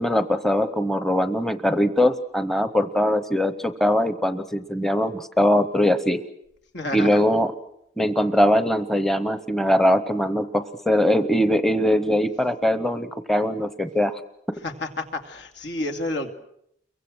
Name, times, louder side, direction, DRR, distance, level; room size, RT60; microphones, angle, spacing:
voice 1, 0.0-6.2 6.9-7.5 8.0-14.2, left 1 dB, ahead, 10 dB, 0.9 m, -21 dB
voice 2, 6.7-7.2 14.6-16.3, left 2 dB, 75° left, 5 dB, 2.7 m, -30 dB
30.0 x 23.5 x 6.4 m, 0.74 s
head